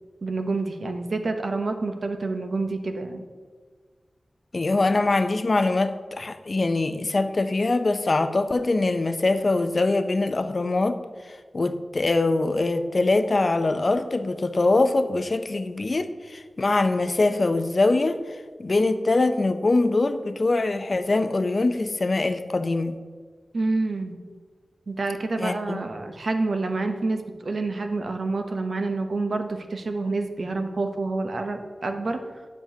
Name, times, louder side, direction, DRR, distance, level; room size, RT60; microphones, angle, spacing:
voice 1, 0.2-3.3 23.5-24.2 24.9-32.2, right 3 dB, 65° right, 6 dB, 0.7 m, -28 dB
voice 2, 4.5-11.0 11.5-18.2 18.6-23.0 25.4-25.9, left 2 dB, 50° left, 10 dB, 0.4 m, -23 dB
8.9 x 7.2 x 2.7 m, 1.5 s
wide cardioid pair, 65°, 0 cm